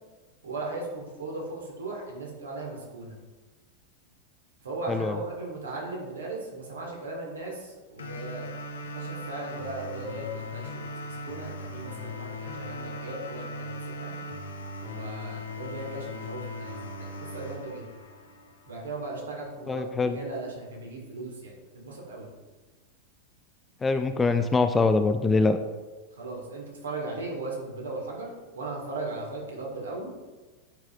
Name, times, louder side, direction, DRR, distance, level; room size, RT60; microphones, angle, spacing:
voice 1, 0.4-3.2 4.6-14.1 14.8-17.9 18.7-22.3 26.2-30.1, right 2 dB, 70° right, -1 dB, 1.8 m, -37 dB
voice 2, 4.9-5.2 19.7-20.2 23.8-25.6, left 3 dB, 15° left, 9 dB, 0.3 m, -23 dB
sound 1, 8.0-19.0, left 2 dB, 65° left, 0.8 m, -39 dB
8.8 x 5.5 x 2.5 m, 1.3 s
figure-of-eight pair, 90°, 0 cm